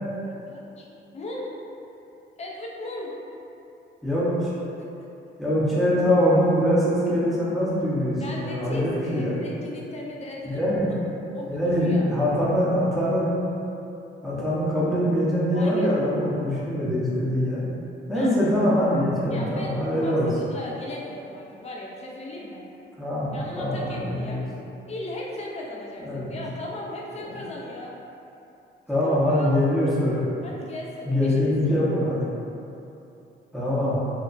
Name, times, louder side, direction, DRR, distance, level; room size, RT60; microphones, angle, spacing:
voice 1, 0.2-0.9 1.1-1.5 2.4-3.1 8.2-11.0 11.3-12.1 15.5-15.9 18.1-18.3 19.3-22.6 23.3-24.4 24.9-27.9 29.0-29.5 30.4-31.4 31.7-31.9, left 1 dB, 35° left, -3 dB, 0.5 m, -37 dB
voice 2, 4.0-4.5 5.4-9.4 10.4-10.9 11.5-13.3 14.2-17.6 18.1-20.3 23.0-24.4 26.0-26.4 27.3-27.4 28.9-30.3 31.0-32.2 33.5-34.0, equal, ahead, -9 dB, 0.8 m, -23 dB
2.8 x 2.2 x 2.5 m, 2.8 s
cardioid pair, 90°, 20 cm